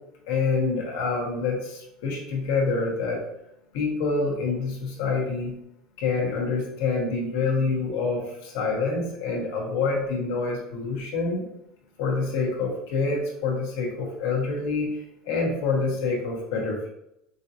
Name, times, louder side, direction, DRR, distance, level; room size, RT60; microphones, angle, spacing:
voice 1, 0.3-3.2 3.7-5.6 6.0-11.5 12.0-16.9, left 4 dB, 80° left, -2 dB, 1.4 m, -27 dB
5.5 x 2.7 x 2.9 m, 0.82 s
cardioid pair, 150°, 0 cm